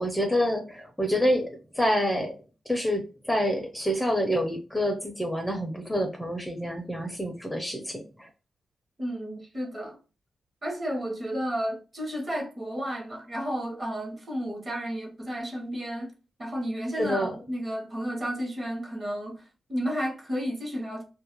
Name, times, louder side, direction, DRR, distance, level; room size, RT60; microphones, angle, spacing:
voice 1, 0.0-2.3 2.7-8.3 17.0-17.3, equal, 5° left, 0.5 m, -27 dB
voice 2, 9.0-10.0 10.6-16.1 16.4-21.0, equal, 35° right, 0.9 m, -32 dB
2.3 x 2.1 x 2.9 m
cardioid pair, 75°, 0 cm